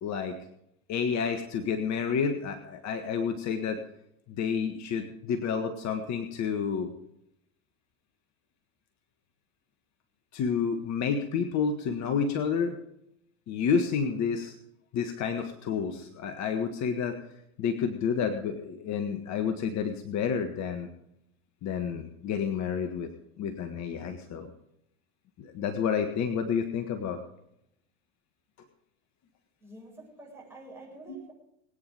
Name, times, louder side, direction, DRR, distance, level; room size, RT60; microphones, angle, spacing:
voice 1, 0.0-0.4 0.9-3.8 4.4-6.9 10.3-12.8 13.5-14.5 14.9-17.2 17.6-20.9 21.6-23.1 23.4-24.5 25.4-27.2 31.1-31.2, left 6 dB, 45° left, 7 dB, 1.6 m, -30 dB
voice 2, 29.6-31.3, right 2 dB, 5° right, -3 dB, 7.9 m, -47 dB
21.0 x 9.5 x 5.2 m, 0.78 s
hypercardioid pair, 85°, 40 cm